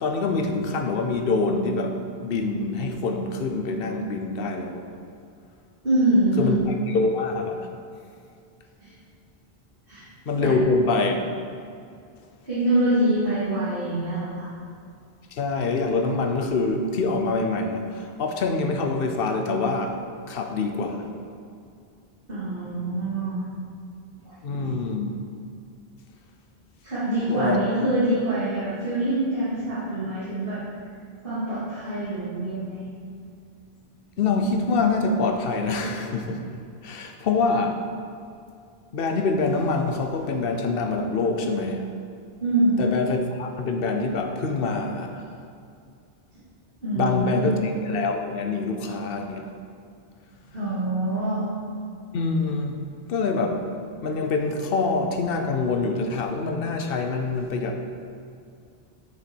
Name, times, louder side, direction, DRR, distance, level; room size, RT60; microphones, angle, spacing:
voice 1, 0.0-4.8 6.4-6.6 6.9-7.7 10.3-11.4 15.3-20.0 20.3-21.1 24.4-25.2 27.3-27.7 34.2-36.4 36.8-37.8 38.9-41.9 42.8-45.3 46.9-47.6 47.8-49.5 52.1-52.8 53.1-53.7 54.0-57.8, left 3 dB, 65° left, 5 dB, 0.9 m, -25 dB
voice 2, 5.8-6.6 8.8-8.9 9.9-10.0 10.3-10.5 12.4-14.5 22.3-23.4 24.2-24.7 26.8-30.6 31.2-32.8 42.4-42.8 46.8-47.6 50.5-51.5, right 1 dB, 60° right, -12 dB, 2.4 m, -25 dB
6.9 x 6.8 x 4.5 m, 2.4 s
omnidirectional pair, 1.0 m